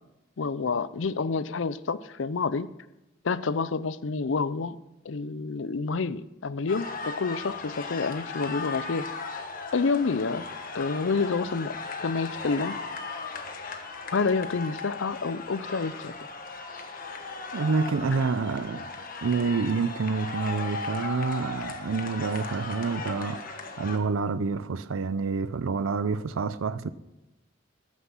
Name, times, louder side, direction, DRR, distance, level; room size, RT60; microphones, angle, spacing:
voice 1, 0.4-2.7 3.2-4.8 5.0-9.1 9.7-10.4 10.7-11.7 12.0-12.8 14.1-16.1, left 4 dB, 70° left, 0.6 m, -28 dB
sound 1, 6.7-24.0, left 4 dB, 45° left, 1.3 m, -37 dB
sound 2, 9.8-18.1 18.6-20.3 20.6-23.2, right 3 dB, 30° right, 4.5 m, -55 dB
voice 2, 17.5-18.9 19.2-26.9, right 4 dB, 90° right, 0.5 m, -28 dB
13.5 x 9.7 x 5.7 m
head